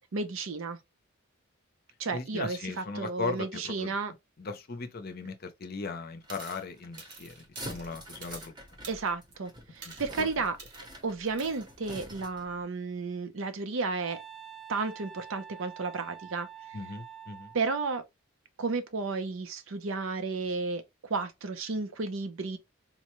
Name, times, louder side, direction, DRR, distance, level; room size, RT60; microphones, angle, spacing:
voice 1, 0.1-0.8 2.0-4.1 8.9-10.6 11.0-14.2 14.7-16.5 17.5-18.0 18.6-20.8 21.1-22.6, right 4 dB, 70° right, 0.6 m, -32 dB
voice 2, 2.1-3.9 4.4-8.5 9.8-10.3 16.7-17.5, left 4 dB, 45° left, 0.6 m, -38 dB
sound 1, 6.2-12.6, right 1 dB, 20° right, 0.8 m, -46 dB
sound 2, 6.3-6.6 7.0-8.5 8.8-9.3 9.8-10.1 10.6-10.8 11.4-11.6, right 4 dB, 50° right, 0.9 m, -48 dB
Wind instrument woodwind instrument, 14.0-17.6, right 9 dB, ahead, 0.3 m, -47 dB
3.8 x 2.2 x 3.0 m
head